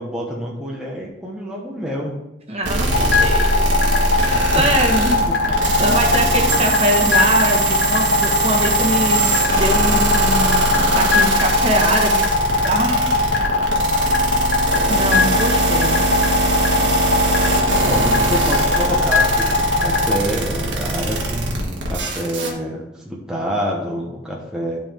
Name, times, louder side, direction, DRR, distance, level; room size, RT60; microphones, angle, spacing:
voice 1, 0.0-2.2 4.6-4.7 5.3-5.5 15.7-15.9 17.8-24.8, equal, 5° right, -3 dB, 1.0 m, -27 dB
voice 2, 2.5-3.6 4.5-5.3 5.8-9.2 9.5-12.3 12.6-13.3 14.9-16.0, right 1 dB, 35° right, 0 dB, 1.4 m, -22 dB
sound 1, 2.6-22.5, right 2 dB, 90° right, 1.5 m, -21 dB
sound 2, 2.9-20.2, left 3 dB, 65° left, 1.0 m, -19 dB
12.0 x 4.6 x 3.6 m, 0.92 s
head